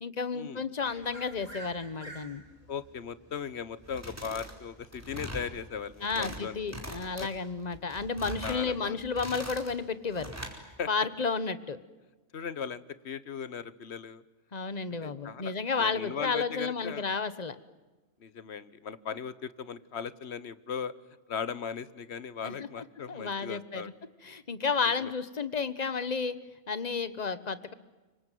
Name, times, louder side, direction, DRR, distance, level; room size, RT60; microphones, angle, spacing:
voice 1, 0.0-2.4 6.0-10.3 10.9-11.8 14.5-17.6 22.4-23.9 24.2-26.4 26.7-27.7, left 5 dB, 35° left, 14 dB, 1.3 m, -32 dB
sound 1, 0.8-9.1, right 1 dB, 30° right, 7.7 m, -53 dB
voice 2, 2.7-6.6 7.2-7.3 8.4-9.0 10.8-10.9 12.3-14.2 15.0-17.1 18.2-20.9 21.3-23.9 25.0-25.1, left 7 dB, 65° left, 16 dB, 1.4 m, -38 dB
sound 2, 3.8-4.5 4.8-5.5 5.9-6.4 6.7-7.3 7.7-8.6 9.0-9.7 10.1-10.6, equal, 10° right, 4.7 m, -41 dB
26.5 x 24.0 x 9.3 m, 1.2 s
omnidirectional pair, 1.2 m